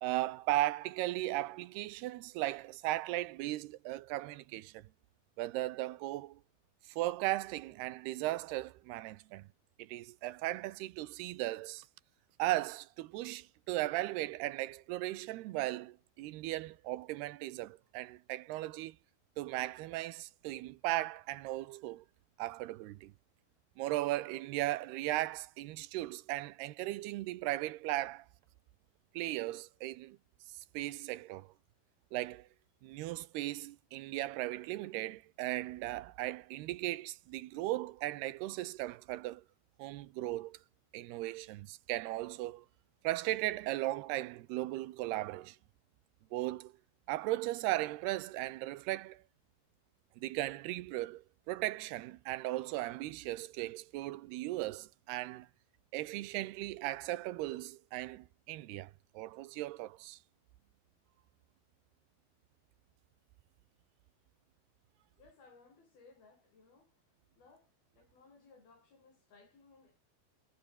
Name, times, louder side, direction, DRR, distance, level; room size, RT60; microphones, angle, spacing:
voice 1, 0.0-4.9 5.4-6.4 6.9-9.5 9.8-11.9 12.4-19.0 19.4-22.0 22.4-23.1 23.8-28.3 29.1-30.2 30.7-31.5 32.1-32.5 32.8-39.4 39.8-40.6 40.9-42.7 43.0-45.6 46.3-46.7 47.1-49.2 50.2-55.5 55.9-60.2, right 17 dB, 80° right, 3.0 m, -37 dB
voice 2, 65.2-67.0 67.4-70.0, left 4 dB, 65° left, 9.6 m, -62 dB
omnidirectional pair, 4.7 m